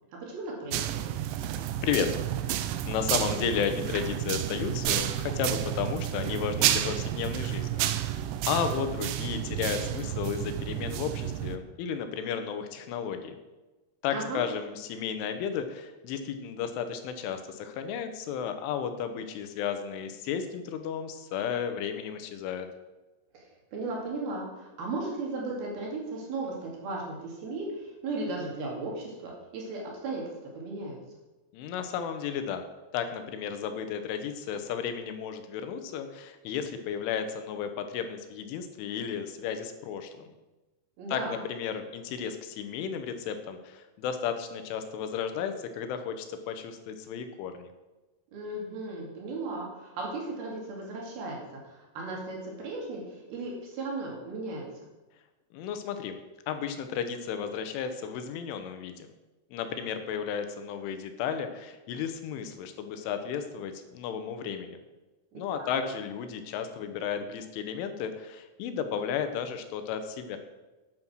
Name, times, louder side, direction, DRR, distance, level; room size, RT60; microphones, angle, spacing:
voice 1, 0.1-1.0 14.1-14.4 23.3-31.0 41.0-41.4 48.3-51.4 51.6-54.6 65.3-65.7, right 2 dB, 60° right, -2 dB, 4.0 m, -36 dB
sound 1, 0.7-11.6, right 12 dB, 85° right, 2.9 m, -31 dB
voice 2, 1.8-2.1 2.4-13.4 14.0-22.7 31.5-32.7 32.9-40.3 41.1-47.7 55.5-56.2 56.5-59.1 59.5-64.8 65.4-70.4, left 7 dB, 85° left, 8 dB, 3.5 m, -33 dB
9.5 x 9.5 x 6.2 m, 1.1 s
omnidirectional pair, 5.4 m